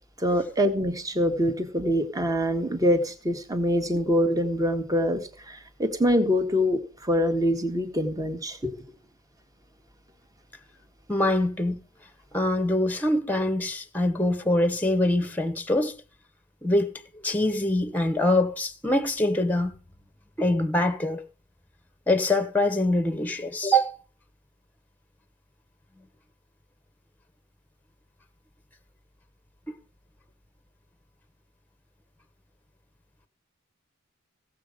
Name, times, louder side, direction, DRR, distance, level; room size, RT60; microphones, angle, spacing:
voice 1, 0.2-8.8, equal, 15° right, 1.4 m, -25 dB
voice 2, 11.1-11.8 12.3-16.0 16.6-16.9 17.2-19.7 20.4-21.2 22.1-23.9, left 1 dB, 10° left, 1.1 m, -24 dB
16.5 x 7.5 x 5.0 m
head